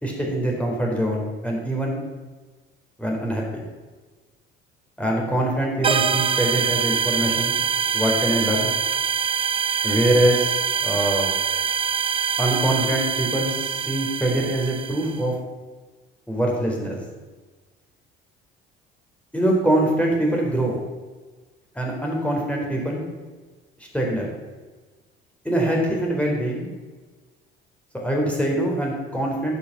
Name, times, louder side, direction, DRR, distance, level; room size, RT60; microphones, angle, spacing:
voice 1, 0.0-2.0 3.0-3.4 5.0-7.6 7.9-8.7 9.8-10.5 10.8-11.3 12.4-15.3 16.3-17.0 19.3-20.8 21.8-23.0 23.9-24.3 25.4-26.7 27.9-29.6, right 1 dB, 5° left, -2 dB, 4.2 m, -23 dB
sound 1, 5.8-15.2, right 7 dB, 20° right, 0.4 m, -24 dB
12.5 x 7.1 x 6.0 m, 1.3 s
figure-of-eight pair, 55°, 30 cm